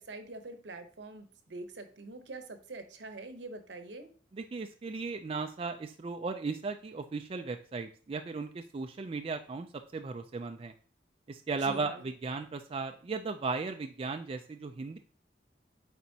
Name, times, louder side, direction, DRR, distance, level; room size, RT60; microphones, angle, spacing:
voice 1, 0.0-4.1 11.6-12.1, right 2 dB, 75° right, 7 dB, 0.9 m, -45 dB
voice 2, 4.3-9.7 9.9-10.7 11.3-15.0, right 4 dB, 30° right, 6 dB, 0.4 m, -36 dB
8.8 x 4.2 x 2.8 m, 0.41 s
head